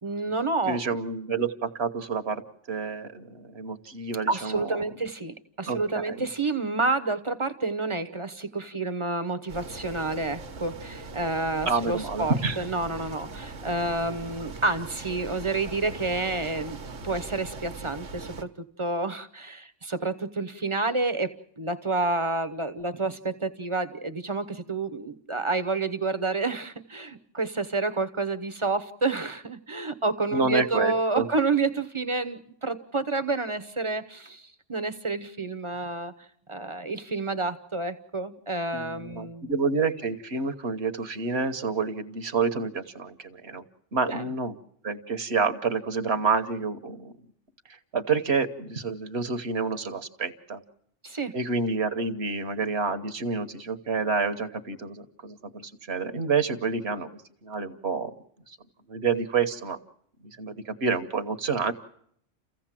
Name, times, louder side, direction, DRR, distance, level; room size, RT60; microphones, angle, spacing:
voice 1, 0.0-1.0 4.3-16.8 17.0-36.1 36.5-39.5 44.0-44.3 51.0-51.3, right 3 dB, 30° right, 10 dB, 0.9 m, -29 dB
voice 2, 0.7-2.4 2.7-4.8 5.7-6.3 11.7-12.6 30.3-31.3 38.7-43.6 43.9-44.5 44.8-47.1 47.9-50.6 51.3-57.1 57.4-58.1 58.5-58.6 58.9-59.8 60.4-61.7, right 4 dB, 60° right, 9 dB, 1.4 m, -28 dB
sound 1, 9.5-18.4, right 3 dB, 85° right, 1.6 m, -41 dB
29.5 x 15.5 x 7.5 m, 0.71 s
omnidirectional pair, 1.2 m